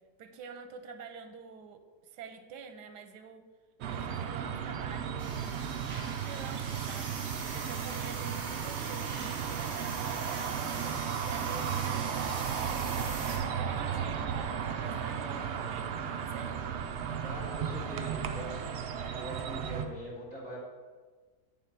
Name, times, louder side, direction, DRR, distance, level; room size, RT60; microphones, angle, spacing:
voice 1, 0.2-1.8 2.1-3.4 3.8-5.7 6.0-7.2 7.5-10.6 11.3-13.0 13.5-16.6, right 6 dB, 90° right, 8 dB, 1.3 m, -47 dB
sound 1, 3.8-19.8, right 7 dB, 75° right, 0.6 m, -34 dB
sound 2, 5.2-13.4, right 2 dB, 40° right, 1.5 m, -43 dB
voice 2, 17.2-18.8 19.1-20.6, equal, 5° left, -10 dB, 2.2 m, -42 dB
8.8 x 3.7 x 5.9 m, 1.4 s
omnidirectional pair, 1.7 m